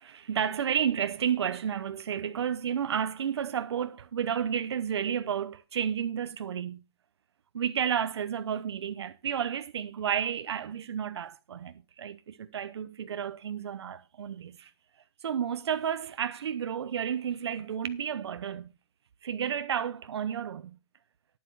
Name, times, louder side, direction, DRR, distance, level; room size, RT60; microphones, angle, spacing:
voice 1, 0.0-6.8 7.5-14.7 15.2-18.7 19.2-20.8, right 8 dB, 80° right, 0.8 m, -31 dB
11.5 x 7.9 x 4.7 m
hypercardioid pair, 115°, 14 cm